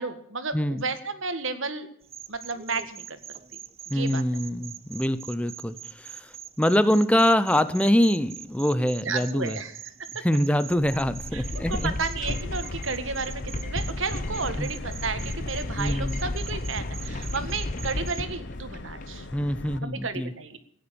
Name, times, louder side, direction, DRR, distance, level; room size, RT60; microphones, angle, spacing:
voice 1, 0.0-1.9 2.3-3.2 3.5-3.6 3.9-4.2 9.0-9.8 10.1-10.3 11.3-19.3 19.8-20.6, right 4 dB, 70° right, 10 dB, 1.9 m, -32 dB
sound 1, 2.0-18.3, right 9 dB, 30° right, 0.7 m, -44 dB
voice 2, 3.9-6.3 6.6-9.6 10.2-11.9 14.6-14.7 15.8-16.2 19.3-20.3, equal, 5° left, 13 dB, 0.7 m, -24 dB
sound 2, 10.7-19.2, left 2 dB, 40° left, 1.0 m, -33 dB
Subway metro underground, 12.3-19.8, left 2 dB, 60° left, 1.1 m, -41 dB
16.5 x 10.0 x 7.0 m, 0.68 s
head